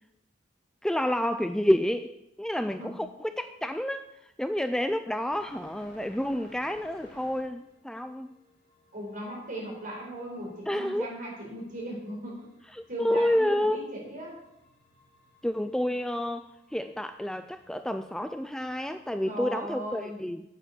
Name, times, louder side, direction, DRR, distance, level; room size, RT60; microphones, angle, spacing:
voice 1, 0.8-8.3 10.7-11.1 12.7-13.9 15.4-20.4, left 1 dB, 5° left, 9 dB, 0.3 m, -29 dB
sound 1, 5.3-19.4, left 1 dB, 60° left, 4.0 m, -59 dB
voice 2, 8.9-12.5 12.9-14.4 19.2-20.2, right 1 dB, 45° right, -2 dB, 5.0 m, -38 dB
9.2 x 9.1 x 7.2 m, 0.87 s
head